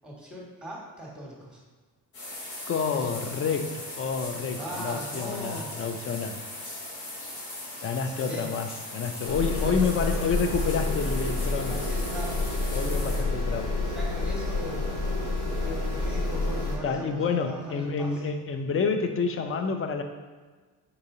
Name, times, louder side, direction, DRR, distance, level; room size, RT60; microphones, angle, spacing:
voice 1, 0.0-1.6 4.5-5.8 7.9-8.6 9.6-9.8 11.5-12.4 13.8-15.0 15.4-18.2, right 1 dB, ahead, -4 dB, 1.5 m, -40 dB
sound 1, 2.1-13.2, left 1 dB, 90° left, 1.2 m, -39 dB
voice 2, 2.6-6.4 7.8-11.7 12.7-13.8 16.8-20.0, left 5 dB, 30° left, 6 dB, 0.4 m, -29 dB
sound 2, 9.2-16.8, left 2 dB, 50° left, 1.2 m, -29 dB
4.0 x 2.7 x 3.7 m, 1.3 s
hypercardioid pair, 60°, 49 cm